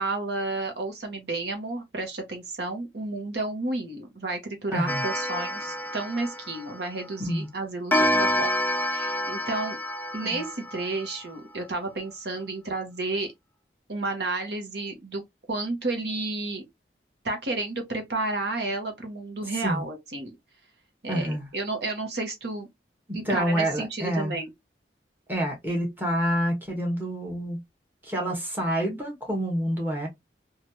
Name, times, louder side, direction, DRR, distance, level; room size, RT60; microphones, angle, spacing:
voice 1, 0.0-8.5 8.9-9.8 10.1-13.3 13.9-15.2 15.5-16.6 17.2-20.4 21.0-22.7 23.1-24.5, right 2 dB, 70° right, 1.0 m, -31 dB
voice 2, 4.7-5.0 7.3-7.5 10.2-10.4 19.6-19.8 21.1-21.5 23.1-24.4 25.3-27.6 28.0-30.1, equal, 10° right, 1.2 m, -28 dB
Clock, 4.9-7.1 7.9-11.3, left 1 dB, 10° left, 0.4 m, -28 dB
3.1 x 2.4 x 2.7 m
head